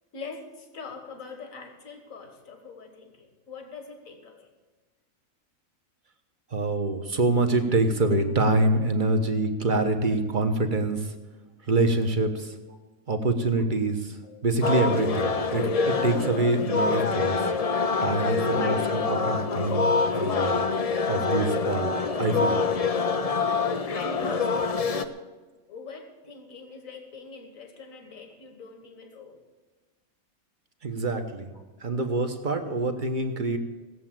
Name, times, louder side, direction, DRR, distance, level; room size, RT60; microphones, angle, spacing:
voice 1, 0.1-4.5 14.2-14.4 18.4-19.0 23.9-25.1 25.7-29.4, left 4 dB, 65° left, 5 dB, 2.1 m, -42 dB
voice 2, 6.5-11.1 11.7-12.5 13.1-17.3 18.0-20.7 21.1-22.7 30.8-31.5 31.8-33.6, right 2 dB, 35° right, 6 dB, 1.2 m, -26 dB
sound 1, 14.6-25.1, left 4 dB, 45° left, 0.5 m, -25 dB
17.5 x 7.6 x 7.5 m, 1.3 s
omnidirectional pair, 1.5 m